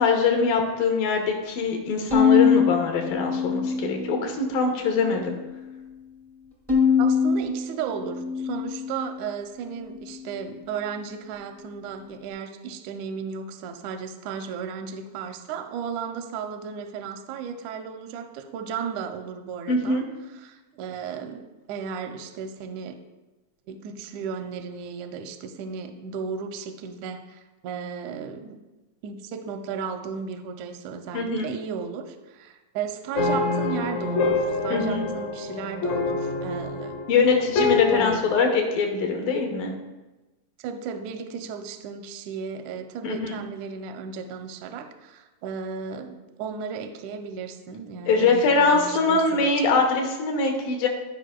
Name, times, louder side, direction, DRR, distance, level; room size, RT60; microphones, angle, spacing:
voice 1, 0.0-5.4 19.7-20.0 31.1-31.5 34.7-35.0 37.1-39.8 43.0-43.4 48.1-50.9, left 4 dB, 85° left, 2 dB, 2.8 m, -23 dB
Bowed string instrument, 2.1-4.5 4.9-5.7 6.7-9.2, left 6 dB, 15° right, 0.4 m, -23 dB
voice 2, 7.0-20.0 20.4-21.4 21.7-23.0 23.7-28.6 29.0-37.0 37.9-38.3 40.6-49.5, right 6 dB, 80° right, 6 dB, 1.8 m, -34 dB
sound 1, 33.1-38.2, left 3 dB, 65° left, 2.1 m, -26 dB
14.5 x 5.3 x 2.2 m, 1.1 s
omnidirectional pair, 3.8 m